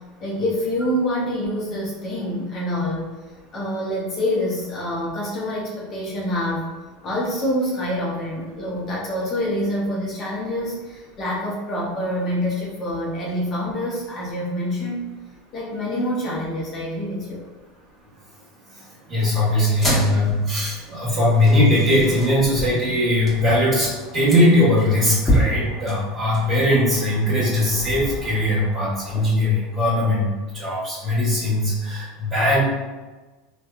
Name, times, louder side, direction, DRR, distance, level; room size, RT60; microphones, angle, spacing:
voice 1, 0.2-3.1 3.5-6.7 7.0-15.1 15.5-17.4 19.2-19.7, left 1 dB, 40° left, -4 dB, 0.7 m, -26 dB
voice 2, 19.1-30.3 30.5-32.7, left 1 dB, 35° right, -10 dB, 1.1 m, -20 dB
sound 1, 19.8-29.2, equal, 15° left, 1.0 m, -29 dB
2.7 x 2.2 x 2.3 m, 1.2 s
hypercardioid pair, 100°, 0 cm